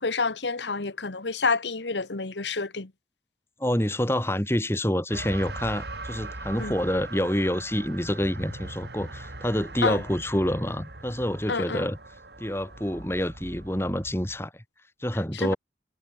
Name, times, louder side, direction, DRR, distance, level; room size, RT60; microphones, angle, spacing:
voice 1, 0.0-2.9 6.6-6.7 9.8-10.0 11.5-11.9 15.3-15.5, left 4 dB, 85° left, 1.4 m, -28 dB
voice 2, 3.6-12.0 12.4-14.5 15.0-15.6, equal, 15° left, 3.5 m, -27 dB
sound 1, 5.1-14.5, right 2 dB, 70° right, 4.5 m, -40 dB
head